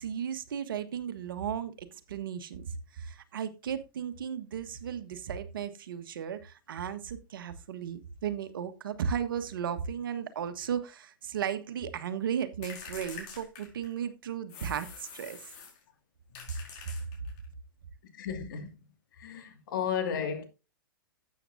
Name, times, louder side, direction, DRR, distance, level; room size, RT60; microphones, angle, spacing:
voice 1, 0.0-15.5, right 8 dB, 70° right, 1.4 m, -35 dB
sound 1, 12.6-14.1 14.5-15.8 16.3-17.5, left 6 dB, 45° left, 5.0 m, -46 dB
voice 2, 18.1-18.7 19.2-20.4, left 7 dB, 65° left, 2.5 m, -33 dB
12.5 x 8.6 x 2.7 m
hypercardioid pair, 115°, 12 cm